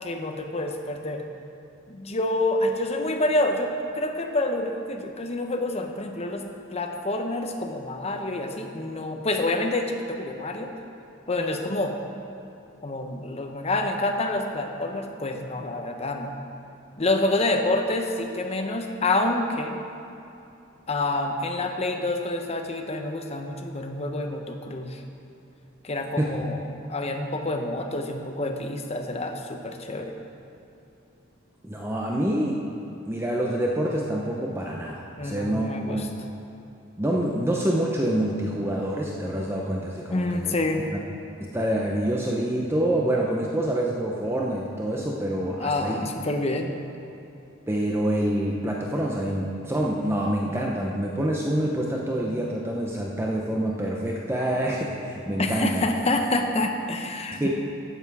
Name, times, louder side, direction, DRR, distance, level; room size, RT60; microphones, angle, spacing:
voice 1, 0.0-1.2 1.9-10.7 11.3-12.0 12.8-16.3 17.0-19.8 20.9-25.0 25.8-26.6 26.9-30.1 35.2-36.1 40.1-40.9 45.6-46.7 55.4-57.5, left 2 dB, 30° left, 4 dB, 0.8 m, -27 dB
voice 2, 31.6-32.6 33.0-36.1 37.0-40.5 41.4-46.0 47.7-55.9 57.4-57.5, right 1 dB, 10° right, -2 dB, 0.7 m, -26 dB
12.5 x 8.0 x 4.8 m, 2.8 s
head